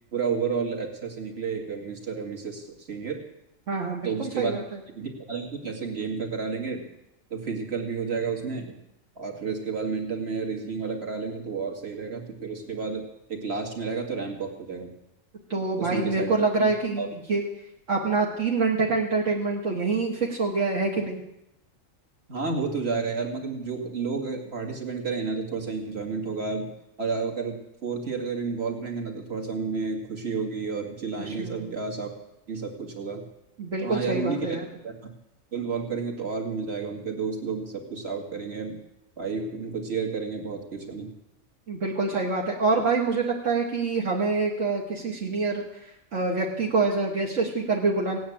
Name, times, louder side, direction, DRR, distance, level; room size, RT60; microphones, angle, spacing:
voice 1, 0.1-3.2 4.0-4.6 4.9-6.9 7.3-8.7 9.2-14.9 15.8-16.3 16.6-16.7 17.0-17.1 22.3-26.7 27.0-32.1 32.5-33.2 33.8-34.6 34.8-34.9 35.5-38.8 39.2-41.1, right 5 dB, 50° right, 1 dB, 2.5 m, -31 dB
voice 2, 3.7-4.6 15.5-17.4 17.9-21.2 31.2-31.6 33.6-34.6 41.7-45.6 46.1-48.2, right 3 dB, 65° right, -2 dB, 2.1 m, -26 dB
17.5 x 9.3 x 8.6 m, 0.86 s
omnidirectional pair, 1.4 m